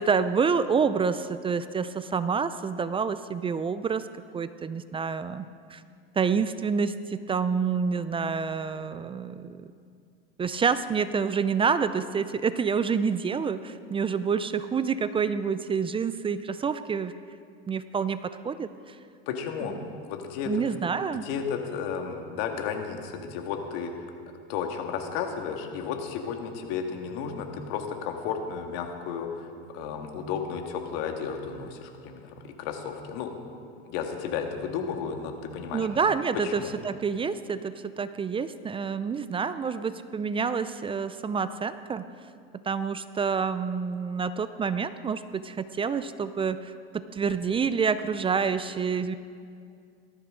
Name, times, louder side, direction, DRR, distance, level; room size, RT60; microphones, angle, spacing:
voice 1, 0.0-5.4 5.7-5.8 6.2-9.7 10.4-17.1 17.7-19.0 20.5-21.3 35.7-42.1 42.6-49.2, right 6 dB, 20° right, 13 dB, 0.4 m, -28 dB
voice 2, 19.3-19.8 20.0-20.5 21.2-24.0 24.5-33.3 33.9-35.9 36.4-36.7, left 6 dB, 65° left, 4 dB, 1.9 m, -33 dB
18.5 x 13.5 x 3.8 m, 2.3 s
supercardioid pair, 110°, 30 cm